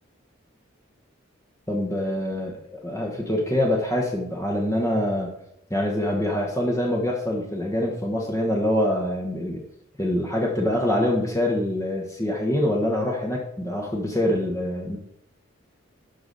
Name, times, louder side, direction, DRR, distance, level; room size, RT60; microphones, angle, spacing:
voice 1, 1.7-5.4 5.7-9.6 10.0-15.0, left 1 dB, 15° left, -1 dB, 1.1 m, -25 dB
12.0 x 4.9 x 4.0 m, 0.76 s
head